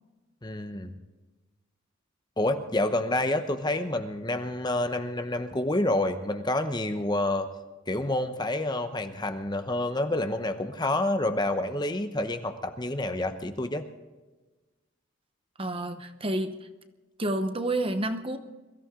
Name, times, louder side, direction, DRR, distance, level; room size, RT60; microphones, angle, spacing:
voice 1, 0.4-0.9 2.4-7.5 7.9-13.8, left 1 dB, 20° left, 8 dB, 0.9 m, -28 dB
voice 2, 15.6-16.7 17.2-18.4, right 1 dB, 25° right, 8 dB, 0.9 m, -29 dB
22.5 x 14.5 x 3.8 m, 1.2 s
head